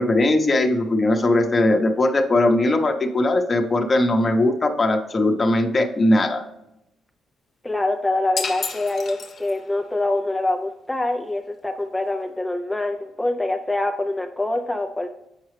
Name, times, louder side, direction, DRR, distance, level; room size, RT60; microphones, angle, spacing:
voice 1, 0.0-6.4, left 2 dB, 30° left, 4 dB, 0.9 m, -19 dB
voice 2, 7.6-15.1, left 2 dB, 10° left, 4 dB, 0.5 m, -25 dB
sound 1, 8.4-9.8, left 5 dB, 50° left, 0.9 m, -31 dB
7.5 x 4.6 x 3.2 m, 0.84 s
cardioid pair, 90°, 0 cm